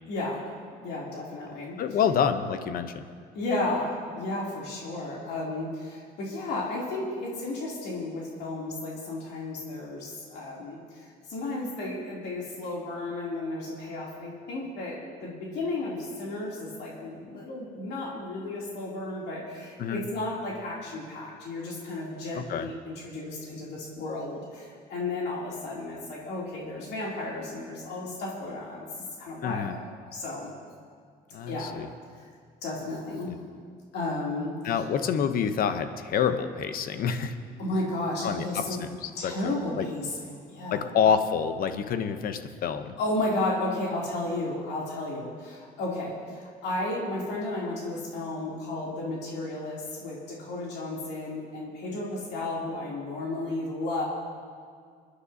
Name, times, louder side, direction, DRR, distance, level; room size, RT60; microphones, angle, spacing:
voice 1, 0.1-0.4 0.8-1.8 3.3-28.9 29.2-29.8 30.1-30.5 31.5-31.8 32.6-33.3 33.9-34.7 37.6-38.8 39.2-40.9 43.0-54.0, left 2 dB, 75° left, -4 dB, 3.0 m, -33 dB
voice 2, 1.8-3.1 19.8-20.0 22.3-22.7 29.4-29.8 31.3-31.9 33.3-33.4 34.6-37.4 38.2-39.9 40.7-43.0, left 7 dB, 60° left, 9 dB, 0.8 m, -27 dB
28.5 x 9.8 x 2.8 m, 2.1 s
cardioid pair, 110°, 17 cm